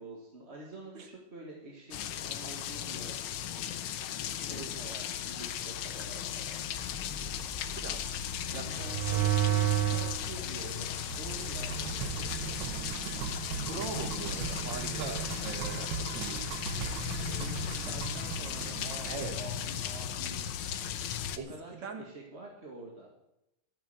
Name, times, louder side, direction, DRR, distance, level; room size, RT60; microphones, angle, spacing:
voice 1, 0.0-3.2 4.4-6.6 8.5-11.9 17.3-20.4 20.8-21.1 21.5-23.1, right 2 dB, 35° right, -2 dB, 2.0 m, -47 dB
sound 1, 1.9-21.4, left 10 dB, 80° left, 1.7 m, -37 dB
voice 2, 4.5-4.9 7.8-8.0 8.5-8.7 9.0-9.5 13.5-16.4 19.1-19.4 21.4-22.0, right 5 dB, 65° right, 5 dB, 2.4 m, -41 dB
sound 2, 6.7-12.3, left 3 dB, 35° left, 0.7 m, -43 dB
sound 3, 8.8-10.2 10.8-19.4, right 10 dB, 85° right, 1.7 m, -34 dB
13.5 x 8.7 x 7.7 m, 0.86 s
omnidirectional pair, 2.3 m